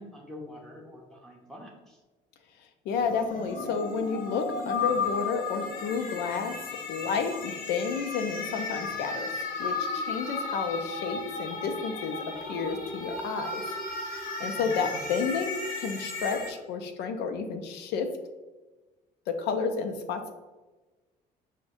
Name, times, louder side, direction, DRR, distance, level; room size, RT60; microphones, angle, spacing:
voice 1, 0.0-2.0 14.6-14.8, left 1 dB, 5° left, -2 dB, 0.8 m, -46 dB
voice 2, 2.9-13.6 14.1-18.1 19.3-20.3, left 5 dB, 85° left, 7 dB, 0.5 m, -31 dB
sound 1, 3.0-16.5, left 4 dB, 55° left, 0.8 m, -34 dB
6.3 x 2.2 x 2.6 m, 1.2 s
cardioid pair, 110°, 17 cm